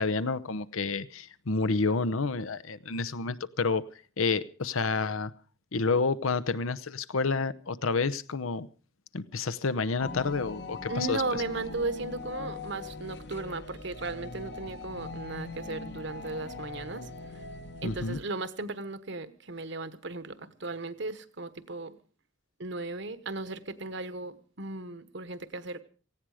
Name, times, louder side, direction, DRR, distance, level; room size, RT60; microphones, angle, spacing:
voice 1, 0.0-3.9 4.2-5.3 5.7-8.7 9.1-11.4 17.8-18.2, left 4 dB, 80° left, 0.8 m, -29 dB
sound 1, 10.0-18.2, left 3 dB, 55° left, 1.3 m, -41 dB
voice 2, 10.9-17.1 17.8-22.0 22.6-25.8, right 3 dB, 55° right, 1.2 m, -36 dB
18.0 x 16.0 x 4.9 m
head